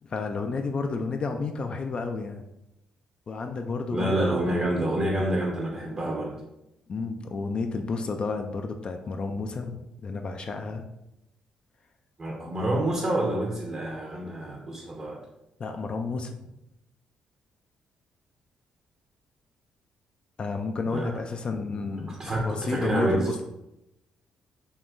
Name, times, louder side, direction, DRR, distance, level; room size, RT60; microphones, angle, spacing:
voice 1, 0.0-2.4 3.3-4.1 4.4-4.7 6.9-10.9 14.2-14.3 15.6-16.4 20.4-23.4, left 4 dB, 45° left, 5 dB, 0.3 m, -31 dB
voice 2, 3.9-6.3 12.2-15.2 20.9-21.1 22.1-23.3, right 1 dB, 40° right, -3 dB, 0.7 m, -27 dB
3.6 x 2.3 x 2.5 m, 0.88 s
supercardioid pair, 60°, 2 cm